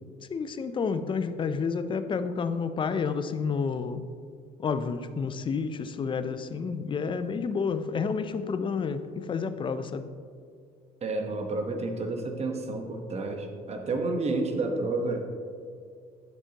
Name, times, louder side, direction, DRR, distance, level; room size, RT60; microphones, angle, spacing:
voice 1, 0.3-4.0 4.6-10.1, left 5 dB, 30° left, 11 dB, 0.5 m, -30 dB
voice 2, 11.0-15.3, right 2 dB, 40° right, 4 dB, 1.1 m, -30 dB
10.5 x 6.7 x 2.9 m, 2.2 s
cardioid pair, 110°, 17 cm